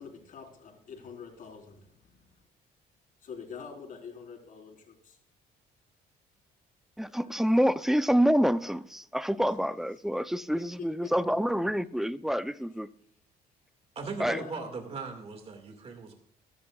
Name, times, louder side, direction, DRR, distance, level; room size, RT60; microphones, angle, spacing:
voice 1, 0.0-2.2 3.2-5.2 7.2-7.5 11.0-11.1 14.3-14.6, left 6 dB, 50° left, 4.4 m, -45 dB
voice 2, 7.0-12.9 14.2-14.5, equal, ahead, 0.5 m, -27 dB
voice 3, 14.0-16.1, right 4 dB, 35° right, 2.0 m, -38 dB
23.5 x 11.0 x 2.4 m
cardioid pair, 110°, 17 cm